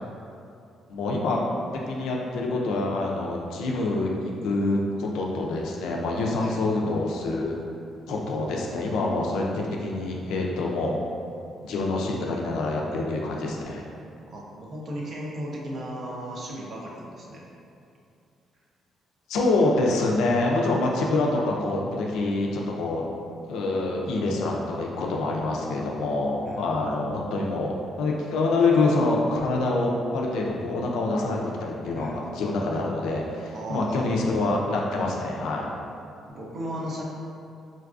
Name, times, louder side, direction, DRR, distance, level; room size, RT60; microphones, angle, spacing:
voice 1, 0.9-1.4 1.7-7.6 8.1-11.0 11.6-13.9 19.3-23.0 23.5-35.7, left 2 dB, 85° left, -1 dB, 0.3 m, -26 dB
voice 2, 14.3-17.4 26.4-27.0 31.9-32.2 33.5-34.3 36.3-37.0, equal, 55° right, -3 dB, 0.6 m, -36 dB
3.8 x 2.3 x 2.4 m, 2.5 s
cardioid pair, 90°, 0 cm